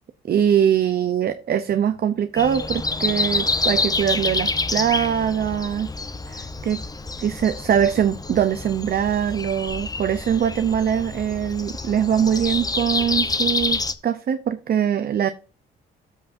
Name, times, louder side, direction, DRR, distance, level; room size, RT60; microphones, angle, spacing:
voice 1, 0.3-5.9 6.3-6.8 7.2-15.3, right 9 dB, 50° right, 0.7 m, -22 dB
Breathing, 2.4-13.9, left 3 dB, 20° left, 0.9 m, -27 dB
14.0 x 5.5 x 2.7 m
cardioid pair, 90°, 20 cm